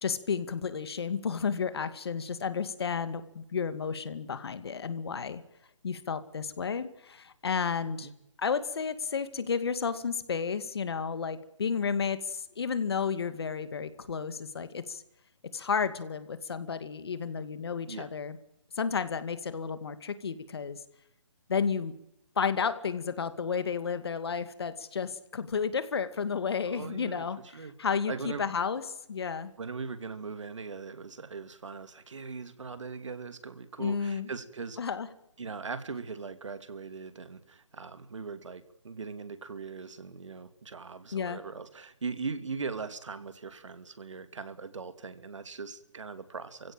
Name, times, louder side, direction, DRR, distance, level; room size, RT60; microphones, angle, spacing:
voice 1, 0.0-5.4 5.8-8.1 8.4-15.0 15.5-18.4 18.8-20.8 21.5-21.9 22.4-28.1 28.4-28.8 29.1-29.5 33.8-34.3 34.8-35.1 41.1-41.4, left 6 dB, 55° left, 12 dB, 2.3 m, -32 dB
voice 2, 26.7-27.3 27.5-27.7 28.1-28.4 29.6-34.8 35.4-46.7, right 5 dB, 80° right, 11 dB, 2.7 m, -40 dB
29.0 x 16.5 x 9.0 m, 0.81 s
hypercardioid pair, 170°, 15 cm